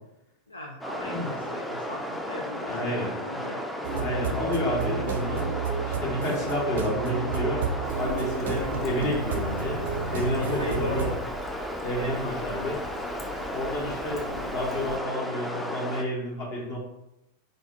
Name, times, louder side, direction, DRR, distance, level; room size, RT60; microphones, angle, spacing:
voice 1, 0.5-3.7 10.4-11.1 12.0-12.4, left 2 dB, 80° left, -1 dB, 0.5 m, -38 dB
sound 1, 0.8-16.1, equal, ahead, 0.5 m, -34 dB
voice 2, 2.7-3.1 4.0-5.5 5.8-9.8 10.1-11.1 11.8-12.8 13.5-16.8, left 1 dB, 45° left, -4 dB, 1.5 m, -30 dB
sound 2, 3.8-11.2, right 5 dB, 60° right, 0.4 m, -31 dB
Trickle dribble, 7.8-15.0, left 2 dB, 25° left, 1.3 m, -43 dB
4.0 x 3.4 x 3.2 m, 0.88 s
figure-of-eight pair, 90°, 0 cm